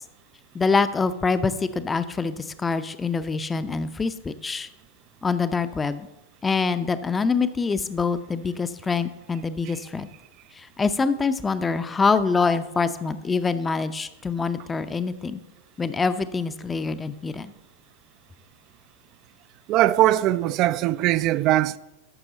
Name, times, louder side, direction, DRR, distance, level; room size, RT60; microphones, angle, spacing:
voice 1, 0.5-4.7 5.2-6.1 6.4-10.1 10.6-15.4 15.8-17.5, left 4 dB, 15° left, 0.5 m, -25 dB
voice 2, 19.7-21.8, right 14 dB, 40° right, 0.3 m, -20 dB
13.5 x 6.1 x 3.9 m
figure-of-eight pair, 90°, 0 cm